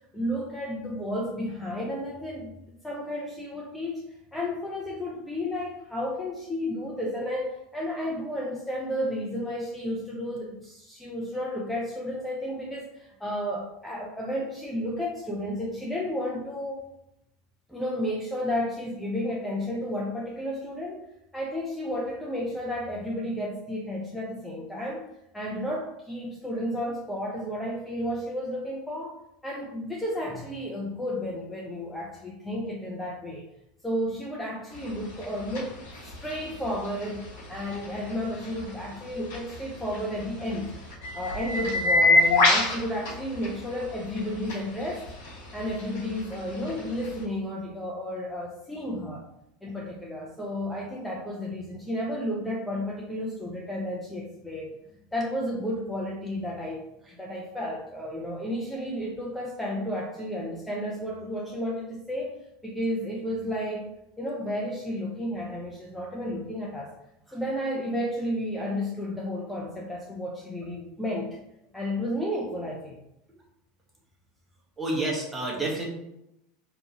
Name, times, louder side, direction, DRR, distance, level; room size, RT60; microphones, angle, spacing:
voice 1, 0.1-16.8 17.7-21.1 21.3-25.1 25.3-29.1 29.4-33.4 33.8-40.7 41.1-45.1 45.5-49.3 49.6-54.7 55.1-56.8 57.1-63.9 64.2-66.9 67.3-71.4 71.7-73.0, left 1 dB, 5° left, -3 dB, 0.5 m, -32 dB
sound 1, 34.7-47.2, left 2 dB, 65° left, 1.0 m, -29 dB
voice 2, 74.8-75.8, right 2 dB, 15° right, -3 dB, 0.9 m, -29 dB
2.7 x 2.2 x 2.7 m, 0.84 s
figure-of-eight pair, 80°, 0 cm